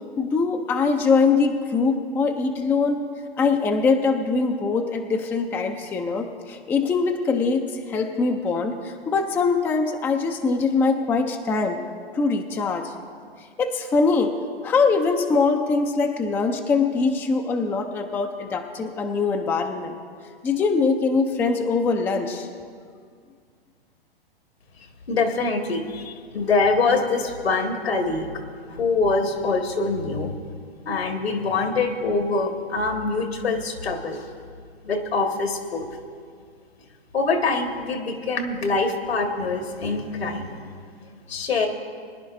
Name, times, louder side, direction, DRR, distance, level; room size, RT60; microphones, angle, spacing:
voice 1, 0.2-3.0 3.4-11.8 12.1-12.9 13.6-14.3 14.6-20.0 20.4-22.5, left 4 dB, 5° left, 5 dB, 0.4 m, -22 dB
voice 2, 25.1-28.3 28.6-30.3 30.9-34.2 34.8-35.9 37.1-40.7 41.3-41.7, left 3 dB, 75° left, 4 dB, 1.8 m, -24 dB
23.0 x 10.5 x 2.6 m, 2.1 s
hypercardioid pair, 120°, 31 cm